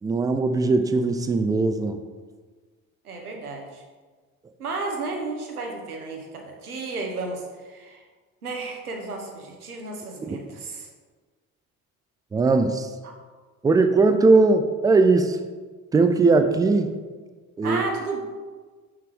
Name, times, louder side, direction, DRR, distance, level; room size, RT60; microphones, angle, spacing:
voice 1, 0.0-2.0 10.3-10.4 12.3-12.9 13.6-15.4 15.9-17.0 17.6-17.8, right 3 dB, 10° right, 8 dB, 0.3 m, -19 dB
voice 2, 3.0-3.8 4.6-8.0 8.4-10.9 17.6-18.2, right 3 dB, 85° right, 1 dB, 0.9 m, -33 dB
6.1 x 5.9 x 3.3 m, 1.4 s
figure-of-eight pair, 55°, 43 cm